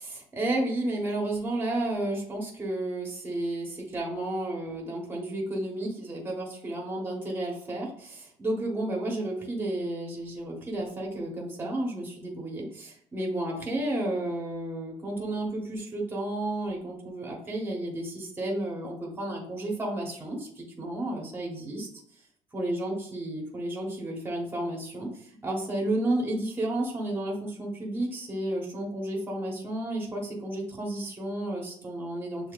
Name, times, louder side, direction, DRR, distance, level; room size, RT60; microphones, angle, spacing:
voice 1, 0.0-21.9 22.5-32.5, right 1 dB, 15° right, -1 dB, 1.2 m, -32 dB
6.9 x 2.8 x 2.5 m, 0.64 s
cardioid pair, 145°, 12 cm